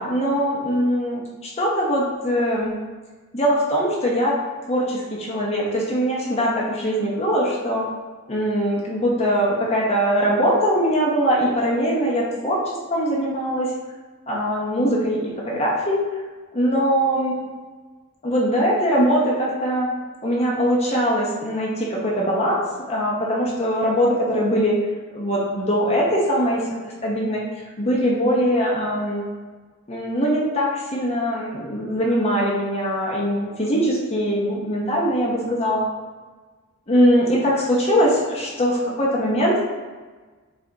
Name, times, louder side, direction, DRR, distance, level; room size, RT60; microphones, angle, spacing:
voice 1, 0.0-2.7 3.3-4.4 4.7-7.9 8.3-13.7 14.3-16.2 16.5-17.4 18.2-19.9 20.2-24.8 25.1-27.4 27.8-29.2 29.9-35.8 36.9-39.5, equal, 30° left, -4 dB, 0.8 m, -21 dB
5.5 x 2.4 x 3.9 m, 1.3 s
head